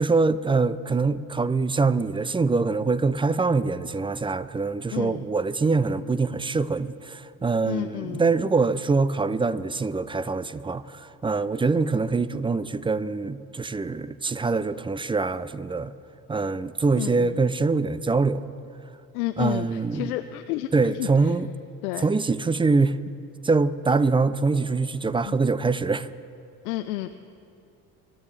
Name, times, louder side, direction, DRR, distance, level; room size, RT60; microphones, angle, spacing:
voice 1, 0.0-15.9 16.3-18.4 19.4-20.1 20.7-21.5 22.0-23.0 23.4-26.1, right 4 dB, 10° right, 16 dB, 0.4 m, -24 dB
voice 2, 4.9-5.2 7.7-8.3 17.0-17.4 19.1-21.1 21.8-22.0 25.2-25.4 26.6-27.2, left 15 dB, 75° left, 9 dB, 0.6 m, -31 dB
24.5 x 11.5 x 3.3 m, 2.5 s
hypercardioid pair, 55°, 46 cm